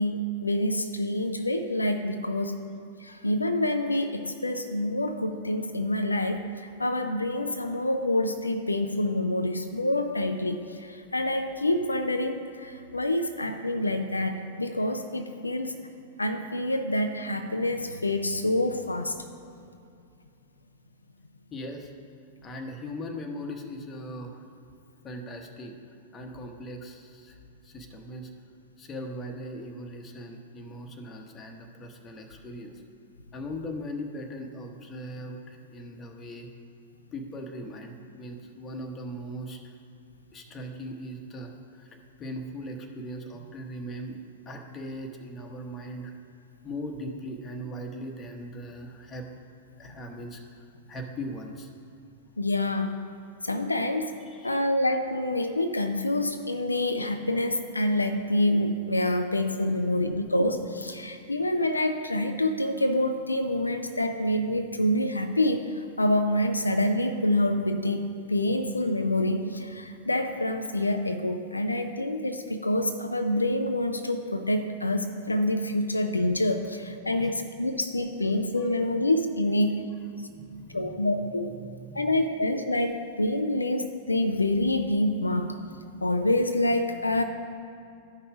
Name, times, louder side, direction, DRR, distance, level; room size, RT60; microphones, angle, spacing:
voice 1, 0.0-2.6 3.0-15.7 16.2-19.2 52.4-53.0 53.4-54.2 54.4-65.7 66.0-79.7 80.7-81.5 81.9-85.6 86.0-87.2, left 1 dB, 85° left, 7 dB, 0.4 m, -27 dB
voice 2, 21.5-21.9 22.4-24.4 25.0-25.7 26.1-27.3 27.6-28.3 28.8-32.7 33.3-36.5 37.1-39.6 40.3-41.9 42.2-44.2 44.5-46.1 46.6-49.3 49.8-50.6 50.9-51.7 54.3-54.6 59.7-59.8 77.2-77.3 78.6-78.7 80.3-81.1 81.6-82.1, equal, 25° left, 3 dB, 1.1 m, -39 dB
12.5 x 5.6 x 4.8 m, 2.5 s
figure-of-eight pair, 95°, 0 cm